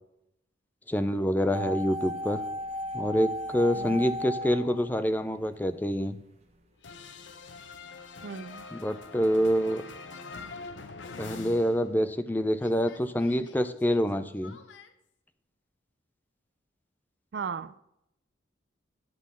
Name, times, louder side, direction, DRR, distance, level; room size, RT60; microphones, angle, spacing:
voice 1, 0.9-2.4 2.9-6.2 8.7-9.8 11.2-14.6, equal, 10° left, 0.4 m, -26 dB
sound 1, 1.5-5.6 5.9-6.0, left 1 dB, 35° right, 0.8 m, -35 dB
voice 2, 3.7-4.1 8.2-8.6 17.3-17.8, right 6 dB, 60° right, 0.4 m, -38 dB
sound 2, 6.8-12.3 12.6-14.9, left 4 dB, 75° left, 0.7 m, -45 dB
10.5 x 3.8 x 7.2 m
head